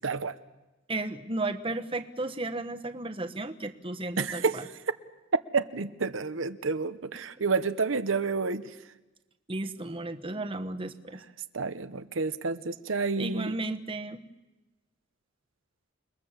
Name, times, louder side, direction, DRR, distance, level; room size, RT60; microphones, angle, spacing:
voice 1, 0.0-0.4 4.2-4.9 5.5-8.7 10.4-10.5 11.5-13.5, right 4 dB, 85° right, 11 dB, 1.0 m, -30 dB
voice 2, 0.9-4.6 9.5-11.2 13.2-14.2, right 2 dB, 30° right, 7 dB, 1.2 m, -34 dB
28.5 x 21.5 x 7.5 m, 1.1 s
head